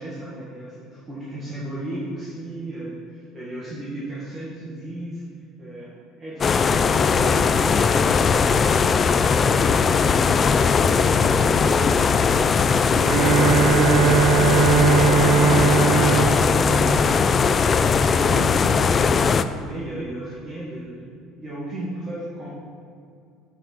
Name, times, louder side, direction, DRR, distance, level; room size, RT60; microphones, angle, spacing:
voice 1, 0.0-5.2 5.6-8.2 9.4-22.5, right 1 dB, 25° right, -8 dB, 1.8 m, -34 dB
sound 1, 6.4-19.4, left 5 dB, 25° left, 0.3 m, -19 dB
Bowed string instrument, 13.1-17.8, right 6 dB, 65° right, 0.4 m, -20 dB
9.0 x 6.1 x 4.6 m, 2.4 s
cardioid pair, 145°, 0 cm